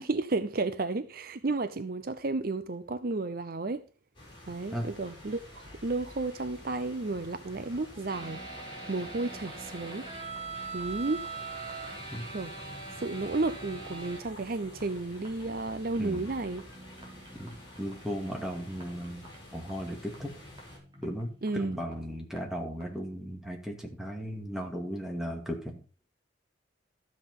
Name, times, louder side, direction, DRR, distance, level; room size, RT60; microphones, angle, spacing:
voice 1, 0.0-3.8 4.5-8.4 8.9-10.1 10.7-11.3 12.3-12.5 13.0-16.6 21.4-21.8, right 3 dB, 50° right, 0.6 m, -32 dB
sound 1, 4.1-20.8, left 1 dB, 25° left, 6.4 m, -50 dB
sound 2, 8.1-22.4 22.8-22.9, right 3 dB, 25° right, 3.8 m, -44 dB
voice 2, 17.4-20.3 21.0-25.8, equal, ahead, 2.3 m, -36 dB
13.0 x 7.6 x 5.4 m
head